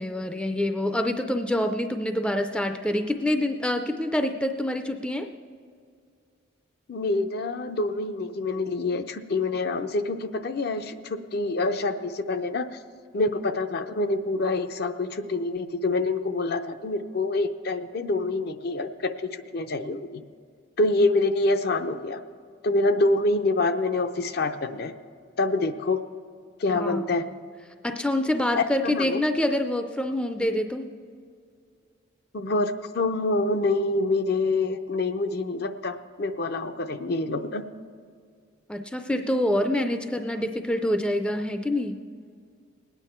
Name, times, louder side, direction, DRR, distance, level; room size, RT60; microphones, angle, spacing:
voice 1, 0.0-5.3 26.8-27.4 27.8-30.9 38.7-42.0, left 1 dB, 5° left, 6 dB, 0.4 m, -26 dB
voice 2, 6.9-12.7 13.1-20.2 20.8-22.2 22.6-24.9 25.4-26.0 26.6-27.3 28.6-29.2 32.3-37.6, left 2 dB, 55° left, 9 dB, 0.6 m, -26 dB
20.0 x 9.1 x 4.4 m, 2.2 s
head